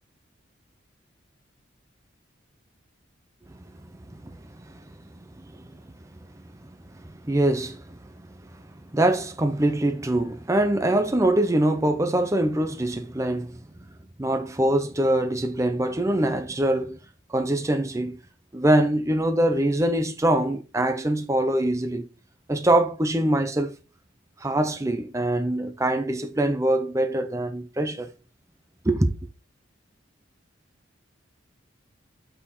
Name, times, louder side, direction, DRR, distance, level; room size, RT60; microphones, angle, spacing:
voice 1, 4.1-4.8 5.4-5.9 6.9-8.1 8.5-8.6 8.9-13.6 14.2-17.0 17.3-18.2 18.5-22.1 22.5-23.8 24.4-28.1 28.8-29.1, right 1 dB, 15° right, 0.5 m, -24 dB
6.4 x 5.6 x 4.1 m
head